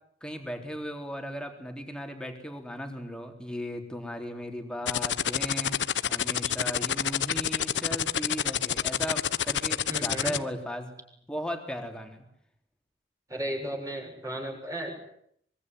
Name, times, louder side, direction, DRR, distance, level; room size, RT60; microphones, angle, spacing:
voice 1, 0.2-5.8 6.1-11.0 11.3-12.2, equal, 5° left, 4 dB, 3.9 m, -36 dB
sound 1, 4.9-10.4, left 9 dB, 85° left, 1.1 m, -27 dB
voice 2, 9.9-10.4 13.3-14.9, right 1 dB, 20° right, 2 dB, 7.3 m, -34 dB
24.5 x 23.0 x 9.8 m, 0.71 s
head